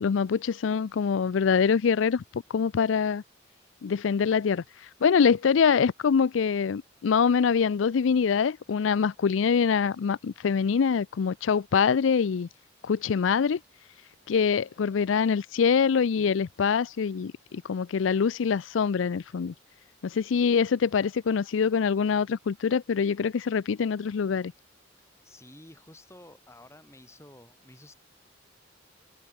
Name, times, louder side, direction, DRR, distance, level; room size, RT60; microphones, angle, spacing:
voice 1, 0.0-3.2 3.8-12.5 12.8-13.6 14.3-19.5 20.0-24.5, left 6 dB, 90° left, 0.4 m, -24 dB
voice 2, 25.0-27.9, left 1 dB, 15° left, 3.5 m, -52 dB
head